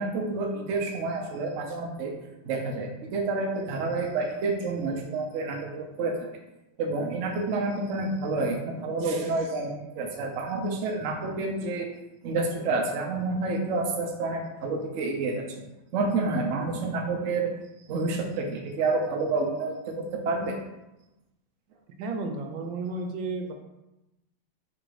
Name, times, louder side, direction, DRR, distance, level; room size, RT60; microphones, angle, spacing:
voice 1, 0.0-2.1 2.4-6.3 6.8-11.9 12.2-15.6 15.9-17.6 17.9-20.6 22.9-23.0, right 3 dB, 65° right, 2 dB, 0.8 m, -29 dB
voice 2, 22.0-23.5, right 3 dB, 85° right, 4 dB, 1.4 m, -32 dB
3.9 x 2.6 x 4.7 m, 0.94 s
omnidirectional pair, 2.0 m